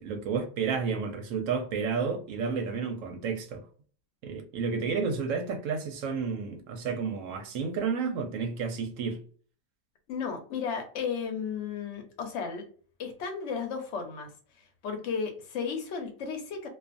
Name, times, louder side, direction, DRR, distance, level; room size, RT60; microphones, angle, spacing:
voice 1, 0.0-3.6 4.2-9.2, right 5 dB, 65° right, 0.9 m, -31 dB
voice 2, 10.1-12.7 13.0-14.3 14.8-16.7, left 6 dB, 55° left, 1.0 m, -34 dB
2.4 x 2.4 x 2.4 m
omnidirectional pair, 1.6 m